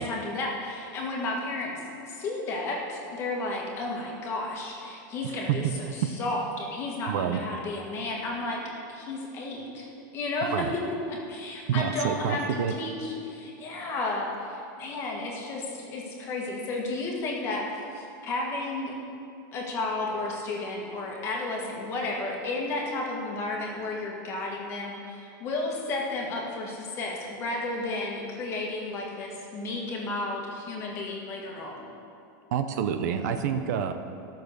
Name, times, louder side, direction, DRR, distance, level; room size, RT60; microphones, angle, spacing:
voice 1, 0.0-5.6 6.2-8.6 8.9-9.9 10.1-10.7 11.1-17.7 17.9-18.9 19.5-31.9, left 2 dB, 25° left, -1 dB, 1.6 m, -32 dB
voice 2, 5.2-5.6 7.1-7.4 10.5-10.7 11.7-12.7 32.5-33.9, right 8 dB, 55° right, 8 dB, 0.7 m, -28 dB
14.0 x 6.6 x 6.7 m, 2.6 s
supercardioid pair, 175°, 11 cm